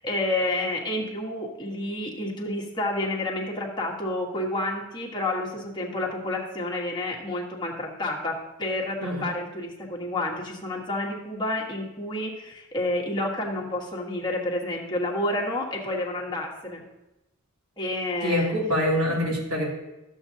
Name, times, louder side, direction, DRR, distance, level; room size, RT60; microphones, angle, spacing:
voice 1, 0.0-16.8 17.8-18.5, left 1 dB, 20° left, -2 dB, 1.5 m, -29 dB
voice 2, 18.2-19.7, left 1 dB, 80° right, -3 dB, 2.7 m, -25 dB
13.0 x 7.3 x 2.8 m, 1.0 s
head